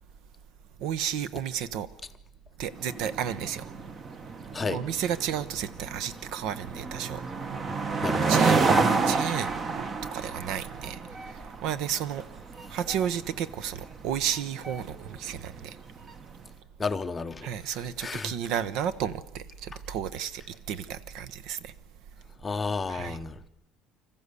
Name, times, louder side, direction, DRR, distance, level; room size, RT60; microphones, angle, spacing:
voice 1, 0.8-1.9 2.6-3.7 4.7-7.2 8.3-8.6 9.1-9.8 10.1-12.2 12.7-15.8 17.4-21.7 22.9-23.2, right 9 dB, 60° right, 0.9 m, -32 dB
sound 1, 2.8-16.3, right 4 dB, 25° right, 0.9 m, -30 dB
voice 2, 8.0-8.3 8.7-9.0 16.8-17.5 18.0-18.3 22.4-23.5, left 4 dB, 15° left, 0.7 m, -32 dB
25.5 x 14.5 x 8.3 m
cardioid pair, 170°, 0 cm